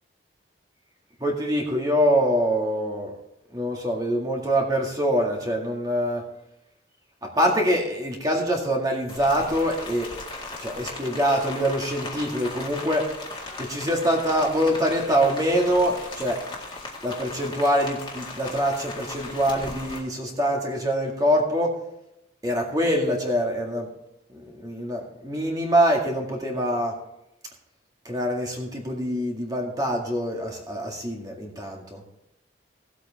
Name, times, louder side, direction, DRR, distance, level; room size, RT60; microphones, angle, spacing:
voice 1, 1.2-3.2 3.5-6.2 7.2-10.1 10.6-13.1 13.6-16.4 17.0-21.7 22.4-23.9 24.3-26.9 28.1-32.0, equal, 20° right, 0 dB, 1.9 m, -24 dB
Rain, 9.1-20.0, left 2 dB, 25° left, 1.9 m, -37 dB
17.0 x 8.2 x 3.5 m, 0.84 s
head